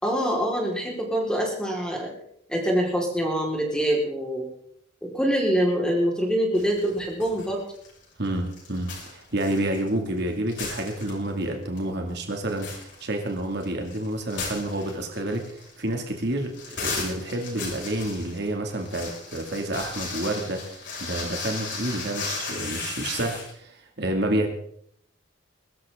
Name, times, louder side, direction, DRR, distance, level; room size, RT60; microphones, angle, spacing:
voice 1, 0.0-2.1 2.5-4.5 5.0-7.6, equal, 5° left, -1 dB, 4.3 m, -25 dB
sound 1, 6.5-7.5 7.7-10.2 10.5-11.4 11.8-11.9 12.3-23.5, left 4 dB, 60° left, 5.8 m, -36 dB
voice 2, 8.2-24.5, right 1 dB, 55° right, 3 dB, 2.3 m, -29 dB
22.5 x 13.5 x 3.7 m, 0.67 s
head